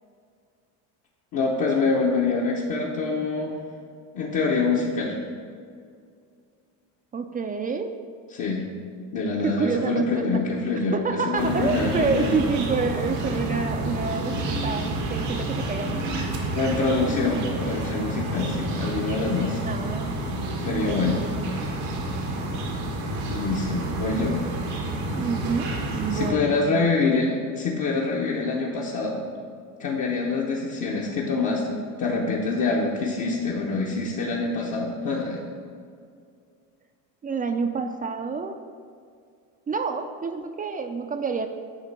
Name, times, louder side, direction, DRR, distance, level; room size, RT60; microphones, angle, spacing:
voice 1, 1.3-3.5 4.1-5.1 8.3-8.7 9.1-12.4 16.5-19.6 20.6-21.3 23.3-24.4 26.1-29.2 29.8-35.4, left 3 dB, 55° left, -4 dB, 1.1 m, -25 dB
voice 2, 7.1-7.9 9.4-10.4 10.9-16.1 19.6-20.4 20.7-21.2 25.1-26.9 37.2-38.6 39.7-41.5, right 4 dB, 25° right, 6 dB, 0.4 m, -28 dB
sound 1, 11.4-26.3, right 1 dB, 90° right, 1.5 m, -29 dB
9.6 x 3.3 x 5.9 m, 2.2 s
cardioid pair, 110°, 36 cm